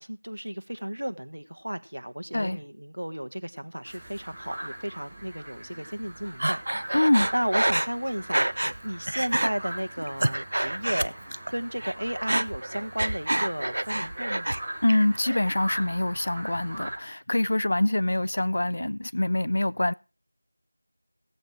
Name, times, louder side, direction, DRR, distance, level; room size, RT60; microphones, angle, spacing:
voice 1, 0.0-7.0 7.3-11.2 11.5-14.5, equal, 80° right, 1.5 m, -33 dB
sound 1, 3.8-17.0, right 1 dB, 10° right, 4.0 m, -41 dB
Breathing, 6.4-8.8 9.1-9.5 10.0-11.5 11.8-14.6 14.9-15.5, right 1 dB, 65° right, 0.5 m, -27 dB
voice 2, 6.9-7.3 14.8-19.9, left 1 dB, 55° left, 0.6 m, -25 dB
16.0 x 8.1 x 4.5 m
figure-of-eight pair, 170°, 0 cm